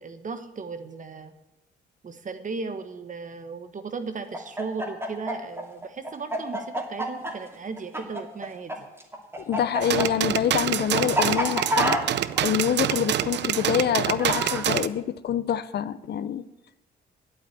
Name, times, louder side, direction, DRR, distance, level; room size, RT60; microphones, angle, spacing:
voice 1, 0.0-1.3 2.0-8.7, right 4 dB, 40° right, 9 dB, 1.3 m, -36 dB
Chicken rooster, 4.3-8.7 9.0-14.6, equal, 10° right, 2.4 m, -28 dB
voice 2, 9.5-12.0 12.4-16.4, left 9 dB, 55° left, 14 dB, 0.6 m, -26 dB
sound 1, 9.8-14.9, right 11 dB, 60° right, 0.5 m, -26 dB
8.7 x 8.1 x 9.1 m, 0.94 s
cardioid pair, 90°, 20 cm